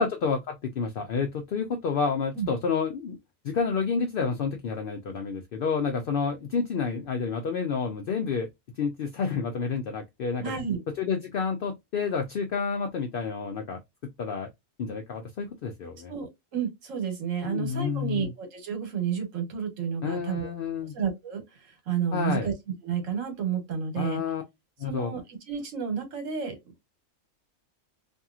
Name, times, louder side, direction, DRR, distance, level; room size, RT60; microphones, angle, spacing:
voice 1, 0.0-3.2 3.4-8.5 8.8-10.4 11.0-14.5 14.8-16.1 17.4-18.3 20.0-20.9 22.1-22.5 24.0-24.4 24.8-25.1, left 5 dB, 65° left, 0.5 m, -29 dB
voice 2, 10.4-10.8 16.1-20.5 20.9-22.5 22.8-24.2 24.9-26.5, right 7 dB, 70° right, 1.5 m, -31 dB
2.9 x 2.6 x 2.3 m
omnidirectional pair, 1.4 m